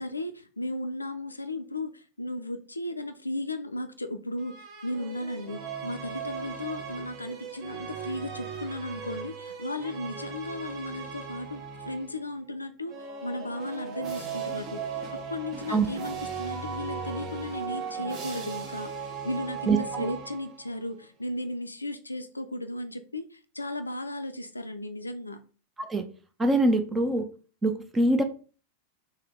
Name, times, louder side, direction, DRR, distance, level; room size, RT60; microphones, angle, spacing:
voice 1, 0.0-18.9 19.2-25.4, left 1 dB, 80° left, 8 dB, 0.3 m, -35 dB
sound 1, 4.4-12.2 12.8-20.8, right 6 dB, 35° right, 0.8 m, -37 dB
voice 2, 19.7-20.1 25.8-26.1 26.4-27.3 27.6-28.2, right 2 dB, 15° right, 7 dB, 0.4 m, -24 dB
3.4 x 2.8 x 3.4 m, 0.38 s
figure-of-eight pair, 90°, 0 cm